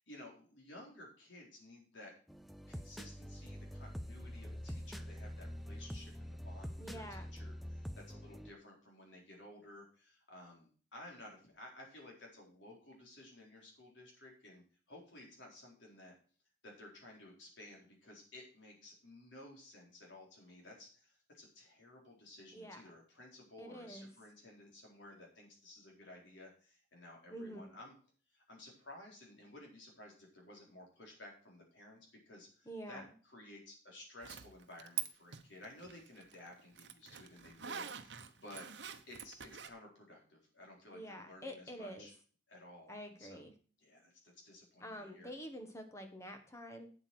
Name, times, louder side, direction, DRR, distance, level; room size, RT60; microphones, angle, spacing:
voice 1, 0.0-2.1 2.7-16.1 16.6-27.9 28.3-38.7 39.1-42.1 42.5-43.5 43.8-44.1 44.4-45.3, left 1 dB, 80° left, -1 dB, 4.3 m, -55 dB
sound 1, 2.3-8.5, equal, ahead, 0.4 m, -46 dB
voice 2, 6.8-7.3 22.5-22.8 23.6-24.1 27.3-27.8 32.7-33.0 40.9-42.1 42.9-43.5 44.8-46.9, equal, 15° left, 5 dB, 1.5 m, -47 dB
Zipper (clothing), 34.2-35.1 35.3-39.7, right 8 dB, 65° right, 0.9 m, -45 dB
8.2 x 8.0 x 6.1 m, 0.41 s
head